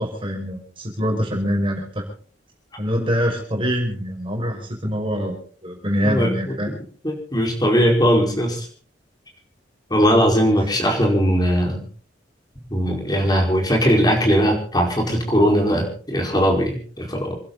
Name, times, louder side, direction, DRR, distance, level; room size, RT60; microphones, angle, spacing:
voice 1, 0.0-2.0 2.8-6.7, equal, 30° right, 2 dB, 5.7 m, -24 dB
voice 2, 7.0-8.6 9.9-11.8 12.7-17.4, equal, 20° left, 1 dB, 4.8 m, -19 dB
28.0 x 12.0 x 4.0 m, 0.42 s
head